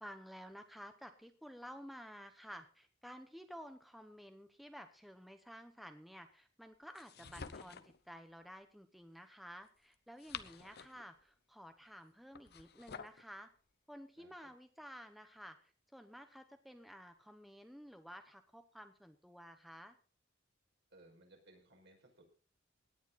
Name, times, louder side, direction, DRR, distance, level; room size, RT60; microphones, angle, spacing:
voice 1, 0.0-13.5 13.9-20.0, equal, ahead, 7 dB, 0.9 m, -53 dB
sound 1, 6.9-8.0 9.9-11.1 12.3-13.2, left 6 dB, 55° left, 0.8 m, -49 dB
voice 2, 7.1-7.8 10.6-10.7 14.2-14.5 20.9-22.2, right 1 dB, 60° right, 1 dB, 5.4 m, -63 dB
18.0 x 10.5 x 4.0 m, 0.38 s
head